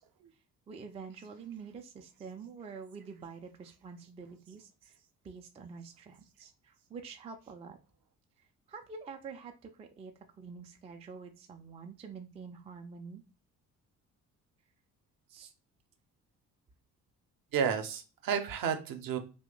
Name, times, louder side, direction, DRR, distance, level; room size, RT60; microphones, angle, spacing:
voice 1, 0.7-5.0 5.2-7.8 8.7-13.2 15.3-15.5, right 5 dB, 15° right, 5 dB, 0.3 m, -47 dB
voice 2, 17.5-19.2, right 7 dB, 50° right, 7 dB, 0.7 m, -31 dB
2.8 x 2.1 x 3.7 m, 0.33 s
figure-of-eight pair, 45°, 44 cm